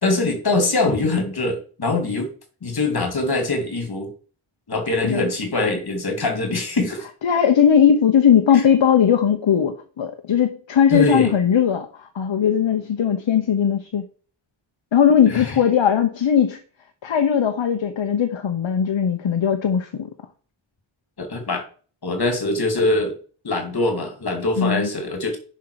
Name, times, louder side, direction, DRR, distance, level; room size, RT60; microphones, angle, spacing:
voice 1, 0.0-2.3 2.6-4.1 4.7-7.1 8.5-8.6 10.9-11.3 15.3-15.6 21.2-21.6 22.0-23.2 23.4-25.4, left 2 dB, 50° left, 5 dB, 2.4 m, -23 dB
voice 2, 7.2-14.0 14.9-16.6 17.0-20.1 24.6-24.9, left 8 dB, 65° left, 6 dB, 1.1 m, -18 dB
10.0 x 5.7 x 4.8 m, 0.41 s
wide cardioid pair, 130°, 49 cm